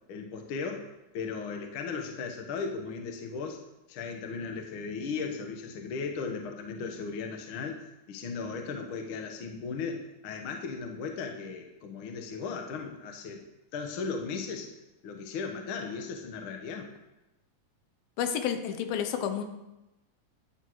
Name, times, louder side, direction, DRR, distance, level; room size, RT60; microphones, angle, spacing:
voice 1, 0.1-0.9 1.1-3.6 3.9-13.4 13.7-14.7 15.0-16.9, left 5 dB, 60° left, 4 dB, 1.3 m, -36 dB
voice 2, 18.2-19.4, left 8 dB, 90° left, 7 dB, 2.7 m, -30 dB
10.0 x 9.5 x 4.7 m, 0.99 s
omnidirectional pair, 4.0 m